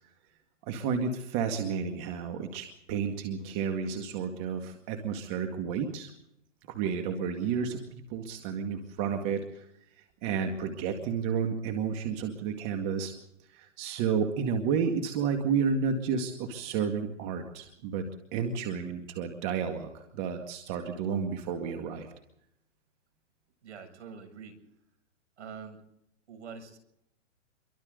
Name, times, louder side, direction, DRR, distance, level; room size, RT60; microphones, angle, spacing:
voice 1, 0.7-6.1 6.7-9.7 10.2-13.1 13.5-18.1 18.3-22.1, right 6 dB, 25° right, 5 dB, 2.1 m, -31 dB
voice 2, 23.6-24.6 25.4-25.9 26.3-26.8, right 6 dB, 65° right, 6 dB, 7.3 m, -45 dB
27.5 x 23.5 x 4.0 m, 0.77 s
hypercardioid pair, 160°, 37 cm